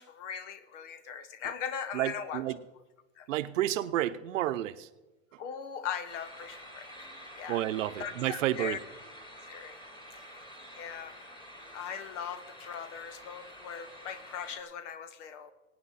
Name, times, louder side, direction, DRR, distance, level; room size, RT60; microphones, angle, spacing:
voice 1, 0.0-2.4 3.2-3.3 5.4-6.9 7.4-7.7 8.0-8.8 9.5-9.8 10.1-10.5 10.7-11.1 11.7-15.5, left 8 dB, 70° left, 13 dB, 1.3 m, -40 dB
voice 2, 1.9-2.6 3.3-4.9 7.5-8.8, right 13 dB, 85° right, 12 dB, 0.8 m, -30 dB
sound 1, 6.1-14.6, equal, 10° left, 2.1 m, -49 dB
18.5 x 9.5 x 4.2 m, 1.1 s
supercardioid pair, 125°, 37 cm